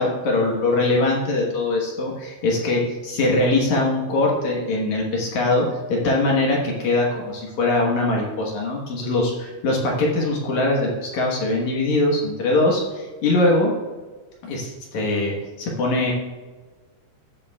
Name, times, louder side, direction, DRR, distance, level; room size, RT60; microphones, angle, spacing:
voice 1, 0.0-13.7 14.4-16.1, left 2 dB, 60° left, -2 dB, 2.0 m, -22 dB
16.0 x 6.9 x 2.3 m, 1.3 s
omnidirectional pair, 4.8 m